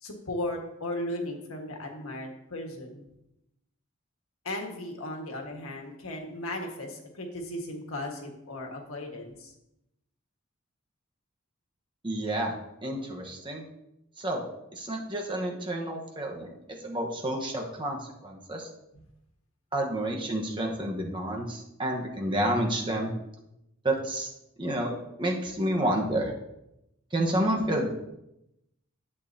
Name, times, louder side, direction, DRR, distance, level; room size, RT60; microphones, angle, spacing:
voice 1, 0.0-3.0 4.4-9.5, left 1 dB, 90° left, 2 dB, 1.6 m, -36 dB
voice 2, 12.0-12.6 12.8-13.6 14.2-14.4 14.7-16.5 16.8-18.7 19.7-23.1 23.8-24.3 24.6-26.3 27.1-27.9, right 1 dB, 25° right, 0 dB, 1.1 m, -29 dB
11.5 x 7.2 x 2.8 m, 0.87 s
head